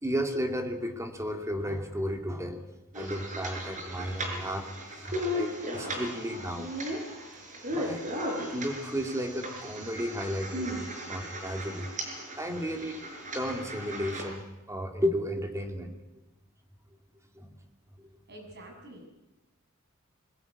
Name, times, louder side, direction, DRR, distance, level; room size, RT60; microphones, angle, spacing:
voice 1, 0.0-2.6 2.9-4.7 5.0-6.7 7.7-8.0 8.5-11.9 12.4-13.0 13.3-16.0 17.4-17.6 18.0-18.1, equal, 15° right, 4 dB, 2.7 m, -33 dB
sound 1, 2.9-14.3, equal, 40° right, 5.9 m, -36 dB
voice 2, 18.3-19.1, right 1 dB, 55° right, 3 dB, 6.9 m, -47 dB
22.5 x 20.5 x 9.7 m, 0.99 s
head